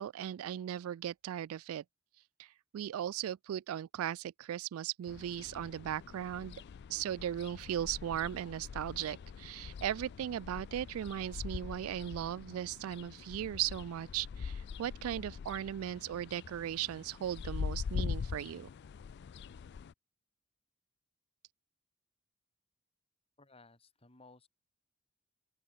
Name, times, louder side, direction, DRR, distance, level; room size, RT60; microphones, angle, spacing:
voice 1, 0.0-1.8 2.4-6.5 6.9-18.7, right 10 dB, 80° right, 0.3 m, -37 dB
sound 1, 5.1-19.9, left 6 dB, 55° left, 0.3 m, -43 dB
voice 2, 23.4-24.5, left 3 dB, 30° left, 2.7 m, -59 dB
head